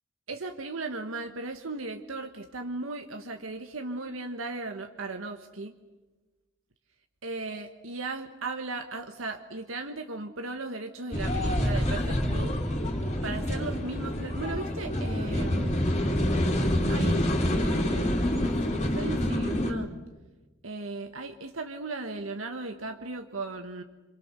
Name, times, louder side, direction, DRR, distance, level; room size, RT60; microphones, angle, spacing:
voice 1, 0.3-5.7 7.2-12.5 13.2-15.8 16.9-17.2 17.5-19.9 20.6-23.8, right 3 dB, 80° right, 5 dB, 1.5 m, -36 dB
sound 1, 11.1-19.7, left 1 dB, 35° left, 3.1 m, -27 dB
27.5 x 27.0 x 6.8 m, 1.2 s
head